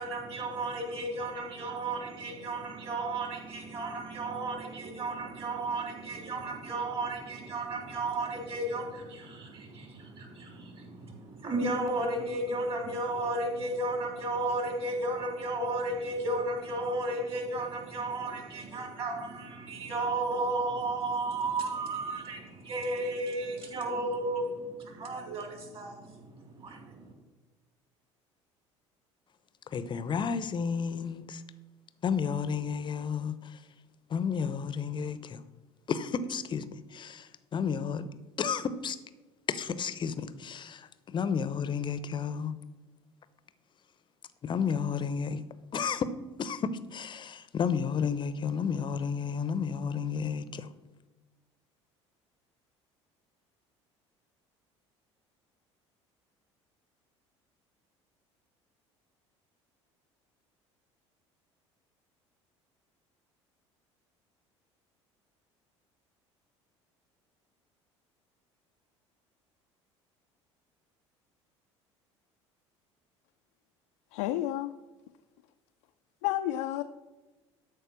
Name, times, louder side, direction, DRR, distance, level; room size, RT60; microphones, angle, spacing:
voice 1, 0.0-27.1, right 2 dB, 35° right, 3.2 m, -34 dB
voice 2, 29.7-31.4 32.0-33.6 34.1-35.4 35.9-36.7 36.9-38.1 38.4-39.0 39.5-42.5 44.4-45.4 45.7-46.1 46.4-50.7, left 6 dB, 30° left, 0.8 m, -32 dB
voice 3, 74.1-74.7 76.2-76.8, left 14 dB, 60° left, 0.5 m, -30 dB
12.5 x 4.8 x 6.3 m
figure-of-eight pair, 60°, 15 cm